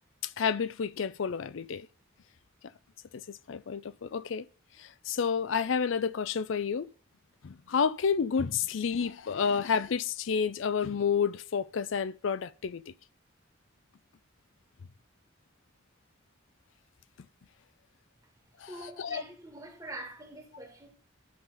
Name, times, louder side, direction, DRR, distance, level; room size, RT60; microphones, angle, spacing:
voice 1, 0.2-1.9 3.1-4.5 4.8-6.9 7.4-12.9 18.6-19.2, left 6 dB, 70° left, 0.4 m, -30 dB
voice 2, 18.7-20.9, right 2 dB, 15° right, 2.1 m, -44 dB
11.5 x 3.9 x 5.7 m
head